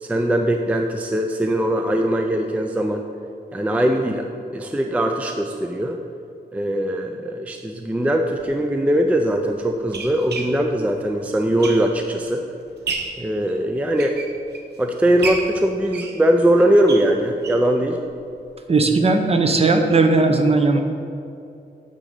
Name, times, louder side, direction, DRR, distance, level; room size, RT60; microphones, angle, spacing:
voice 1, 0.0-3.1 3.5-4.3 4.5-6.0 6.5-12.4 13.2-14.2 14.8-18.0, right 1 dB, 10° right, 4 dB, 0.4 m, -20 dB
sound 1, 8.3-8.4 9.2-12.2 12.6-13.3 13.8-14.8 15.2-17.7 18.1-18.2 18.5-18.6 18.9-19.0, right 4 dB, 85° right, 0.8 m, -32 dB
voice 2, 18.7-20.8, right 3 dB, 35° right, 5 dB, 0.7 m, -17 dB
9.4 x 3.9 x 6.5 m, 2.6 s
wide cardioid pair, 160°, 17 cm